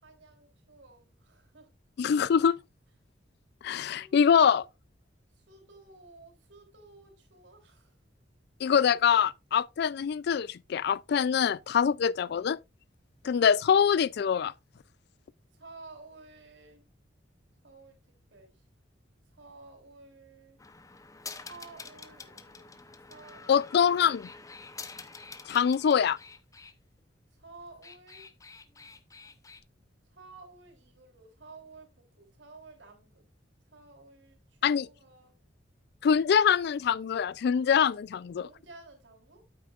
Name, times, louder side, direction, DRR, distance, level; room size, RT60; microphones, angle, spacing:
voice 1, 0.0-1.7 2.1-2.2 3.9-4.6 5.4-8.0 11.8-12.0 13.2-13.5 15.5-16.8 17.6-18.0 18.3-18.6 19.3-20.6 21.4-24.0 27.3-28.3 30.1-33.2 33.7-35.4 38.4-39.4, right 3 dB, 80° right, 3.4 m, -53 dB
voice 2, 2.0-2.6 3.6-4.6 8.6-12.6 13.2-14.5 23.5-24.3 25.5-26.2 34.6-34.9 36.0-38.5, left 7 dB, 60° left, 0.3 m, -24 dB
sound 1, 20.6-26.7 27.6-29.6, left 4 dB, 20° left, 0.7 m, -47 dB
9.3 x 8.5 x 2.4 m
head